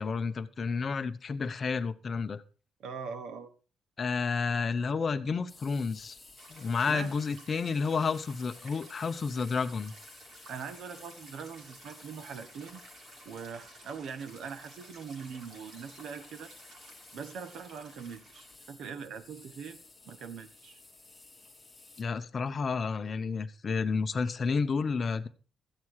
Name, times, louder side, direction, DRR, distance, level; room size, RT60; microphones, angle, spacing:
voice 1, 0.0-2.4 4.0-6.2 6.5-9.9 22.0-25.3, left 5 dB, 30° left, 10 dB, 0.8 m, -31 dB
voice 2, 2.8-3.5 6.9-7.1 10.5-12.8 13.2-16.5 17.1-19.8 20.0-20.8, right 6 dB, 70° right, 11 dB, 1.2 m, -42 dB
sound 1, 5.5-22.0, left 3 dB, 5° left, 1.5 m, -55 dB
sound 2, 6.4-18.6, right 2 dB, 50° right, 2.9 m, -55 dB
14.0 x 9.0 x 4.8 m, 0.37 s
cardioid pair, 180°, 0 cm